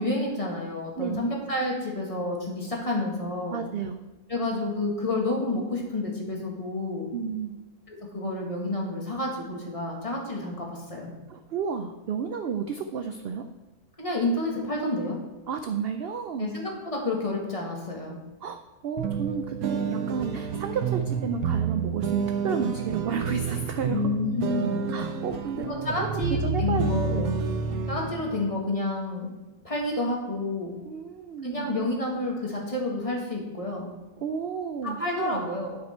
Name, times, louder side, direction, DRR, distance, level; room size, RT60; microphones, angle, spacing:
voice 1, 0.0-3.6 4.3-7.1 7.9-11.1 14.0-15.2 16.4-18.2 23.9-24.9 25.6-27.3 27.9-29.3 29.6-30.8 31.4-33.9 34.8-35.8, left 2 dB, 25° left, -1 dB, 1.8 m, -29 dB
voice 2, 3.5-4.0 7.1-7.7 11.3-13.5 15.5-16.5 18.4-24.1 24.9-25.7 26.0-27.2 30.8-31.8 34.2-35.5, right 6 dB, 65° right, 8 dB, 0.6 m, -32 dB
sound 1, 19.0-28.5, right 5 dB, 85° right, 1.2 m, -29 dB
10.5 x 6.2 x 4.4 m, 1.2 s
omnidirectional pair, 1.5 m